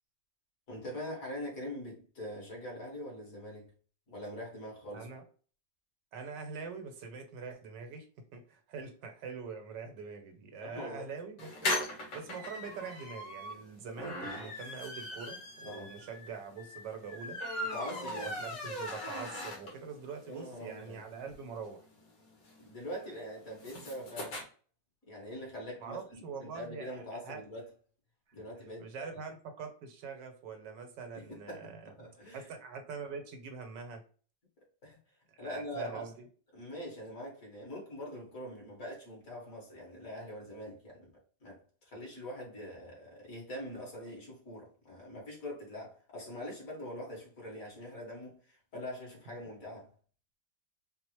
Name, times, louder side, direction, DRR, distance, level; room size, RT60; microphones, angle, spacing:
voice 1, 0.7-3.7 4.1-5.1 10.6-11.1 15.6-15.9 17.6-18.4 20.3-21.0 22.6-24.4 25.0-27.7 28.3-29.2 31.1-32.5 34.8-35.0 35.4-36.1 36.5-41.1 41.4-49.9, left 1 dB, 50° left, 1.8 m, -43 dB
voice 2, 6.1-8.0 8.3-17.4 18.4-21.8 25.8-26.9 27.1-27.4 28.8-31.9 32.3-34.0 35.3-36.1, right 5 dB, 75° right, 1.4 m, -44 dB
sound 1, 11.4-20.0 20.4-20.5 20.7-20.8 21.0-24.4, left 1 dB, 75° left, 1.8 m, -39 dB
4.6 x 2.0 x 2.9 m
omnidirectional pair, 1.9 m